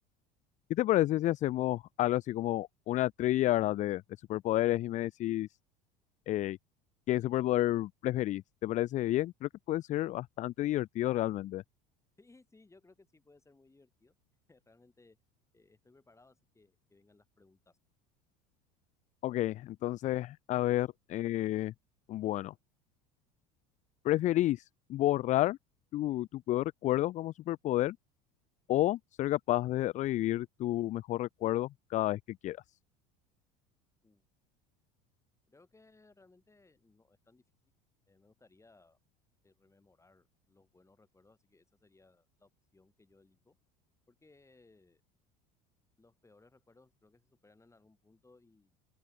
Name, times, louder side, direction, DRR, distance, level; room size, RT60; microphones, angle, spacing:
voice 1, 0.7-4.0 4.3-5.5 6.3-6.6 7.1-11.6 19.2-21.7 22.1-22.5 24.0-25.6 25.9-28.0 28.7-32.6, left 15 dB, 40° left, 0.4 m, -30 dB
voice 2, 12.2-14.2 14.5-15.2 15.5-17.8 34.0-34.2 35.5-37.4 38.1-39.0 39.4-43.6 44.1-45.0 46.0-48.8, left 3 dB, 15° left, 6.1 m, -64 dB
open air
hypercardioid pair, 75°, 21 cm